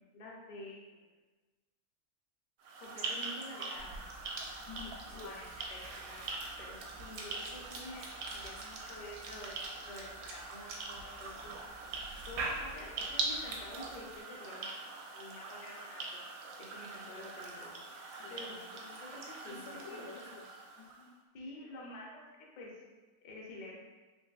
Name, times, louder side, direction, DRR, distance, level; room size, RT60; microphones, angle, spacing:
voice 1, 0.1-1.0 2.8-3.9 5.2-11.5 12.3-14.8 15.1-16.2 16.6-17.7 18.3-19.6 19.9-20.0 21.3-22.2 22.6-22.7 23.2-23.7, left 1 dB, 45° left, -3 dB, 0.6 m, -49 dB
sound 1, 2.6-21.1, right 3 dB, 65° right, 0.7 m, -43 dB
Cough / Chewing mastication, 3.7-14.2, right 2 dB, 85° right, 1.1 m, -46 dB
voice 2, 4.7-5.4 18.1-18.7 19.5-21.1, left 5 dB, 80° left, -6 dB, 1.4 m, -50 dB
3.8 x 3.0 x 2.4 m, 1.3 s
omnidirectional pair, 1.5 m